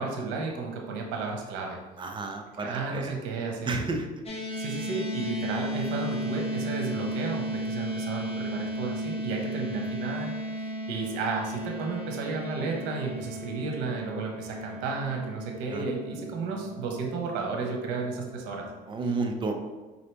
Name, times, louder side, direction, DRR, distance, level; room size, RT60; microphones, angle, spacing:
voice 1, 0.0-1.8 2.6-3.9 4.6-10.3 10.6-18.6, right 4 dB, 80° right, 1 dB, 1.0 m, -33 dB
voice 2, 2.0-3.1 3.7-4.1 15.7-15.9 18.9-19.5, right 3 dB, 25° right, 4 dB, 0.5 m, -31 dB
sound 1, 4.3-18.7, equal, 35° left, 1.1 m, -35 dB
5.0 x 2.8 x 3.3 m, 1.2 s
cardioid pair, 105°, 19 cm